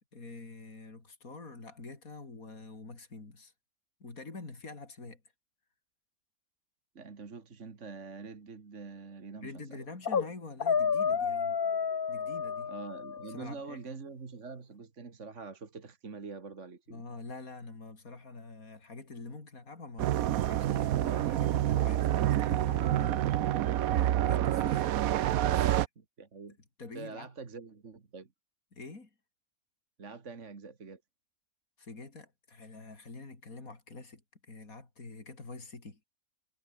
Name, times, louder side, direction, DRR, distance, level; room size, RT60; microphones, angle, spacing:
voice 1, 0.1-3.5 4.0-5.2 9.4-11.6 12.1-12.7 13.3-13.8 16.9-23.6 23.9-25.1 25.5-25.8 26.8-27.3 28.7-29.1 31.8-36.0, left 3 dB, 70° left, 4.3 m, -46 dB
voice 2, 7.0-9.8 12.7-17.0 26.0-26.6 26.9-28.3 30.0-31.0, right 4 dB, 55° right, 2.4 m, -45 dB
sound 1, 9.8-10.3 10.6-13.4, left 6 dB, 40° left, 1.2 m, -30 dB
sound 2, 20.0-25.9, right 12 dB, 75° right, 1.1 m, -27 dB
omnidirectional pair, 1.5 m